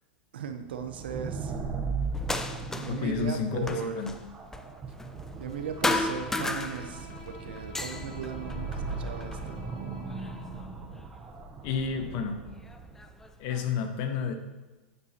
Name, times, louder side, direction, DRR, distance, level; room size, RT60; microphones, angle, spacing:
voice 1, 0.3-1.6 2.8-4.1 5.4-9.6, right 7 dB, 80° right, 7 dB, 0.9 m, -37 dB
sound 1, 0.7-13.3, right 4 dB, 25° right, 1.0 m, -38 dB
sound 2, 2.1-3.1 3.3-5.6 5.8-7.2 7.6-9.4 10.1-11.0 11.9-12.0 12.7-13.7, left 2 dB, 10° left, 0.6 m, -34 dB
voice 2, 2.9-4.1 11.6-12.4 13.4-14.3, left 6 dB, 55° left, 6 dB, 1.2 m, -30 dB
Bowed string instrument, 5.4-10.6, left 2 dB, 85° left, 2.4 m, -49 dB
9.8 x 7.9 x 3.0 m, 1.1 s
hypercardioid pair, 110°, 5 cm